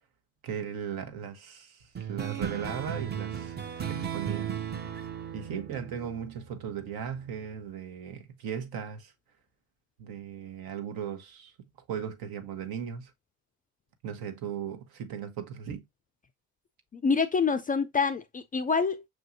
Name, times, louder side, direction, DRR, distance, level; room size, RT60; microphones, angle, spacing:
voice 1, 0.4-3.6 3.9-4.5 5.3-9.1 10.0-11.5 11.9-13.1 14.0-15.8, right 8 dB, 65° right, 1.0 m, -37 dB
sound 1, 2.0-6.9, right 8 dB, 25° right, 0.6 m, -35 dB
voice 2, 16.9-19.1, left 5 dB, 25° left, 0.3 m, -26 dB
6.1 x 2.6 x 2.5 m
supercardioid pair, 70°, 39 cm